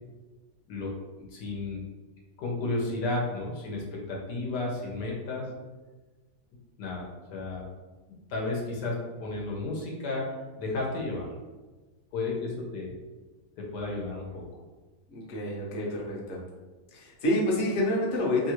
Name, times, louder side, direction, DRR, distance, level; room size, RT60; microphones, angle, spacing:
voice 1, 1.2-1.8 2.4-5.5 6.8-7.6 8.3-11.3 12.1-12.9 13.6-14.4, left 2 dB, 80° left, -2 dB, 1.3 m, -33 dB
voice 2, 15.1-16.4 16.9-18.5, left 1 dB, 60° left, -4 dB, 1.1 m, -28 dB
3.0 x 2.4 x 2.9 m, 1.2 s
omnidirectional pair, 1.8 m